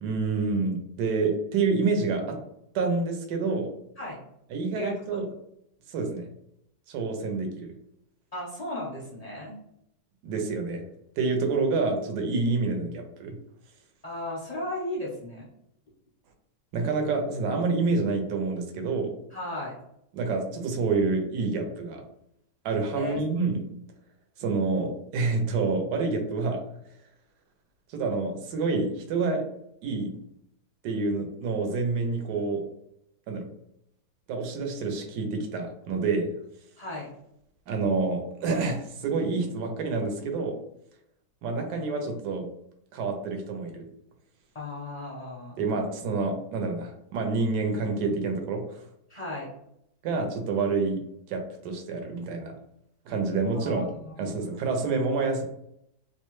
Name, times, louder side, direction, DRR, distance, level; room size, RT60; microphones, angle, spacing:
voice 1, 0.0-2.4 2.7-3.7 4.5-5.3 5.9-6.2 6.9-7.7 10.2-10.8 11.2-13.4 16.7-19.1 20.1-22.0 22.6-23.6 24.4-26.6 27.9-29.4 29.8-30.2 30.8-32.6 33.3-33.5 34.3-36.3 37.7-40.5 41.4-42.5 42.9-43.9 45.6-48.8 50.0-51.0 51.3-52.5 53.1-53.8 54.2-55.4, right 4 dB, 75° right, 4 dB, 1.2 m, -28 dB
voice 2, 8.3-9.6 14.0-15.5 19.3-19.7 22.9-23.2 36.8-37.1 44.5-45.6 49.1-49.5 53.5-54.4, left 1 dB, 40° left, -6 dB, 0.5 m, -35 dB
3.0 x 2.1 x 3.0 m, 0.76 s
omnidirectional pair, 1.8 m